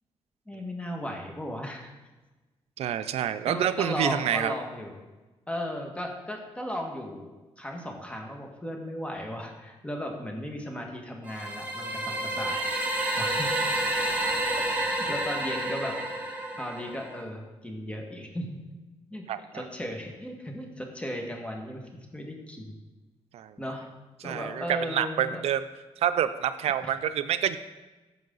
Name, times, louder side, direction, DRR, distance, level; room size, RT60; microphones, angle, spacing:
voice 1, 0.4-1.9 3.4-5.0 5.5-7.3 7.6-12.7 13.2-13.5 15.1-15.9 16.6-18.6 19.1-22.7 23.6-23.8 24.2-25.4 26.8-26.9, equal, 10° left, 2 dB, 1.7 m, -36 dB
voice 2, 2.8-4.5 19.3-19.4 23.3-23.5 24.2-24.6 24.9-25.6 26.0-27.6, right 10 dB, 85° right, 11 dB, 0.5 m, -27 dB
sound 1, 11.3-17.2, right 1 dB, 15° right, 1.8 m, -29 dB
14.5 x 5.5 x 3.9 m, 1.2 s
cardioid pair, 100°, 10 cm